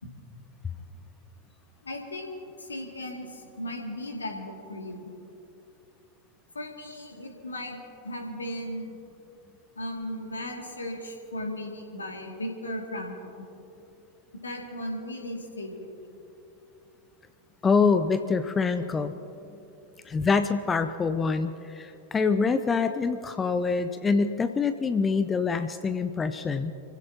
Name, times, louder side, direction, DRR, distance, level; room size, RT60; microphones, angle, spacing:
voice 1, 1.8-5.1 6.5-7.8 8.0-9.0 9.8-13.4 14.4-16.0, left 1 dB, 75° left, 1 dB, 2.5 m, -36 dB
voice 2, 17.6-19.1 20.1-26.7, left 4 dB, 15° left, 10 dB, 0.6 m, -25 dB
29.0 x 16.0 x 3.0 m, 2.8 s
figure-of-eight pair, 90°, 0 cm